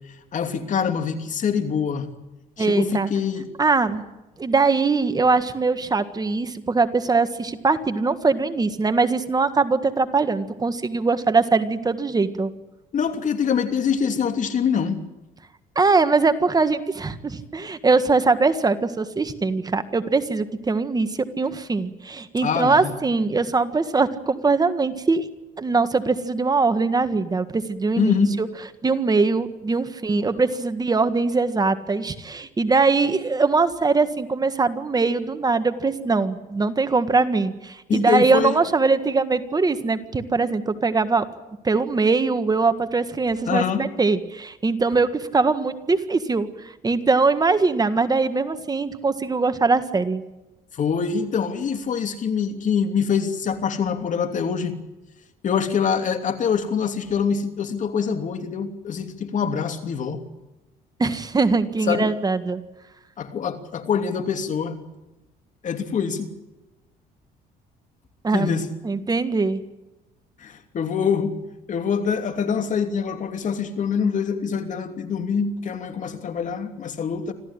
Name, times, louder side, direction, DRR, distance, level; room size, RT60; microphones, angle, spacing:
voice 1, 0.3-2.1 2.6-3.5 12.9-15.0 22.4-23.0 28.0-28.3 37.9-38.5 43.5-43.9 50.7-54.8 55.4-60.2 61.8-62.1 63.2-64.8 65.6-66.3 68.3-68.7 70.4-71.4 71.7-77.3, left 6 dB, 50° left, 3.0 m, -24 dB
voice 2, 2.6-3.1 3.6-4.0 4.4-12.5 15.7-21.1 21.4-25.3 25.6-28.1 28.4-28.5 28.8-41.2 41.6-46.5 46.8-50.2 61.0-62.6 68.2-68.5 68.8-69.6, right 4 dB, 25° right, 1.7 m, -21 dB
26.0 x 15.0 x 9.9 m
cardioid pair, 110°, 17 cm